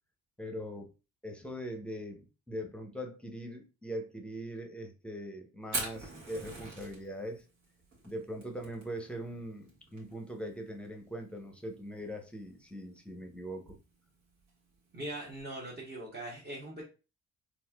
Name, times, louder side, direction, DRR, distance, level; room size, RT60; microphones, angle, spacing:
voice 1, 0.4-0.9 1.2-7.4 8.0-13.8, equal, 5° left, 3 dB, 0.8 m, -41 dB
Fire, 5.6-15.4, right 3 dB, 70° right, 1.6 m, -45 dB
voice 2, 14.9-16.8, right 1 dB, 35° right, -4 dB, 1.1 m, -41 dB
4.2 x 2.6 x 2.3 m, 0.31 s
cardioid pair, 90°, 30 cm